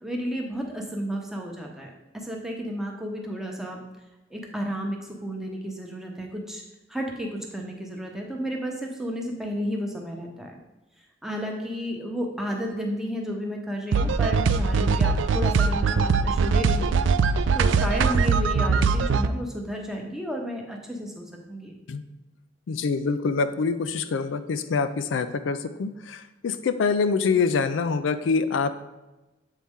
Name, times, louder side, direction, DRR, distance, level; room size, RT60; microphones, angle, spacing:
voice 1, 0.0-3.8 4.3-6.6 6.9-10.6 11.2-17.0 17.5-21.7, equal, ahead, 0 dB, 0.8 m, -32 dB
sound 1, 13.9-19.3, right 4 dB, 80° right, 0.3 m, -21 dB
voice 2, 22.7-28.7, left 5 dB, 85° left, 10 dB, 0.4 m, -25 dB
7.4 x 4.2 x 3.6 m, 1.0 s
head